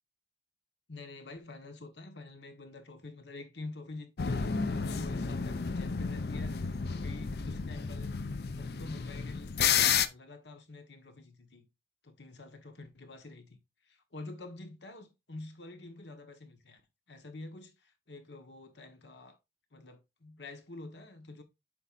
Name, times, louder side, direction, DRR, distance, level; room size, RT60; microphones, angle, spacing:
voice 1, 0.9-8.3 8.6-11.7 12.0-16.8 17.1-19.4 19.7-21.4, left 2 dB, 85° left, 1.3 m, -48 dB
sound 1, 4.2-10.1, left 6 dB, 60° left, 0.5 m, -31 dB
7.8 x 5.4 x 2.5 m
head